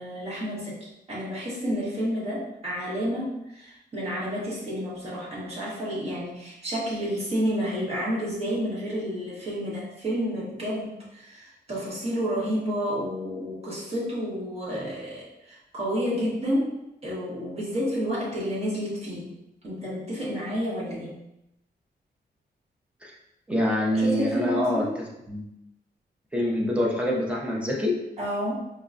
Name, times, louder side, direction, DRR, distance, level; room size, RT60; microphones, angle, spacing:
voice 1, 0.0-19.3 19.6-21.2 23.9-24.9 28.2-28.5, equal, 35° right, -7 dB, 1.2 m, -30 dB
voice 2, 23.5-25.4 26.3-28.0, left 1 dB, 5° right, -3 dB, 0.6 m, -26 dB
4.6 x 2.2 x 2.5 m, 0.88 s
wide cardioid pair, 160°, 18 cm